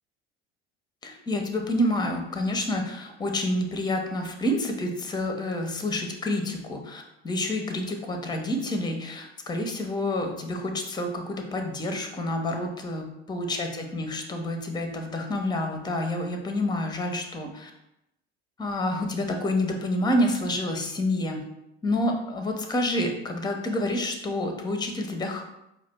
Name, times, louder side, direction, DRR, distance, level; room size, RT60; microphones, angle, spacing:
voice 1, 1.0-17.7 18.6-21.4 21.8-25.4, left 1 dB, 15° left, 4 dB, 0.6 m, -28 dB
4.8 x 2.8 x 3.4 m, 0.86 s
figure-of-eight pair, 65°, 32 cm